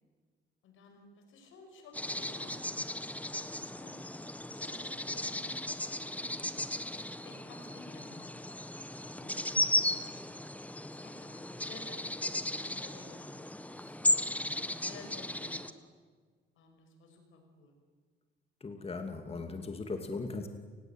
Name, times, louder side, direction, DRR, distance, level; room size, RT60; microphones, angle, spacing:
voice 1, 0.6-2.6 3.5-8.3 9.2-10.2 10.9-14.0 14.2-15.8 16.6-17.7 18.8-19.0, left 3 dB, 85° left, 5 dB, 6.2 m, -55 dB
sound 1, 1.9-15.7, left 1 dB, 5° left, 1.5 m, -35 dB
voice 2, 18.6-20.5, left 3 dB, 30° left, 6 dB, 2.6 m, -38 dB
29.5 x 19.5 x 9.3 m, 1.6 s
cardioid pair, 90°, 20 cm